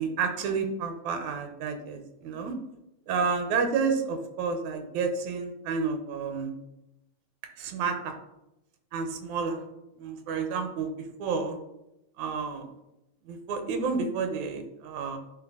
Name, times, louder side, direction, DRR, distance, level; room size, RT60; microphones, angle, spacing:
voice 1, 0.0-2.6 3.1-6.5 7.6-8.2 8.9-9.6 10.0-11.6 12.2-12.7 13.3-15.2, right 5 dB, 80° right, 6 dB, 2.3 m, -30 dB
10.5 x 4.1 x 3.8 m, 0.89 s
omnidirectional pair, 3.5 m